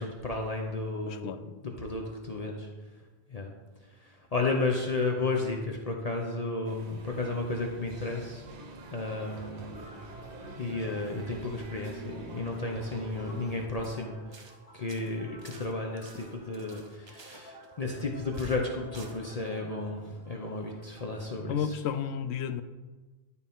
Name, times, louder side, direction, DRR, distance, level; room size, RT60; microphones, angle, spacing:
voice 1, 0.0-1.3 1.6-2.7 3.3-3.5 3.8-8.4 8.9-9.8 10.6-21.8, left 3 dB, 40° left, 0 dB, 0.8 m, -33 dB
voice 2, 1.1-1.5 21.5-22.6, left 8 dB, 80° left, 11 dB, 0.8 m, -32 dB
sound 1, 6.6-13.7, right 2 dB, 85° right, 1.2 m, -45 dB
sound 2, 9.1-21.6, equal, 5° right, 2.1 m, -53 dB
sound 3, 13.7-14.0 14.3-14.6 14.9-18.1 18.3-18.7 18.9-19.2, right 3 dB, 30° right, 0.6 m, -52 dB
11.5 x 4.2 x 3.6 m, 1.3 s
omnidirectional pair, 1.1 m